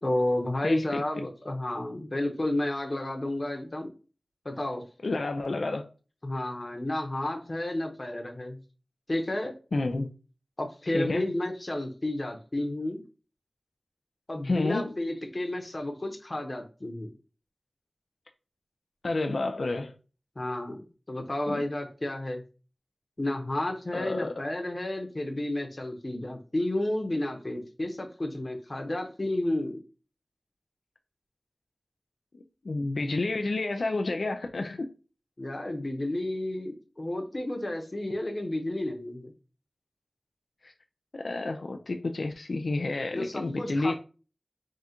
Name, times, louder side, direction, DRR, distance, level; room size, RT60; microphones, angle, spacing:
voice 1, 0.0-3.9 4.4-4.8 6.2-8.6 9.1-9.5 10.6-13.0 14.3-17.1 20.4-22.4 23.2-29.8 35.4-39.3 43.1-43.9, left 1 dB, 40° left, 0.9 m, -31 dB
voice 2, 0.6-1.0 5.0-5.8 9.7-10.1 10.9-11.2 14.4-14.9 19.0-19.9 21.5-21.6 23.9-24.3 32.3-34.9 41.1-43.9, left 2 dB, 75° left, 0.4 m, -30 dB
3.7 x 2.4 x 4.2 m
wide cardioid pair, 70°, 0 cm